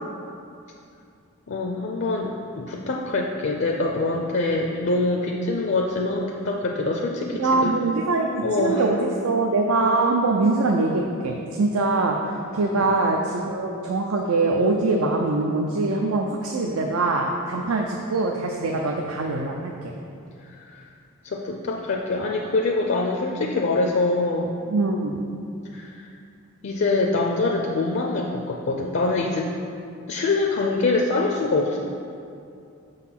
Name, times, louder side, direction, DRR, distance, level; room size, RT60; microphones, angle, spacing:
voice 1, 1.5-7.7 8.4-8.8 12.6-13.0 20.7-20.8 21.2-24.5 25.7-26.1 26.6-29.5 30.1-31.8, left 3 dB, 55° left, 0 dB, 0.5 m, -24 dB
voice 2, 7.4-12.2 12.5-19.9 24.7-25.2, right 3 dB, 85° right, 1 dB, 0.5 m, -23 dB
6.3 x 4.0 x 5.7 m, 2.5 s
head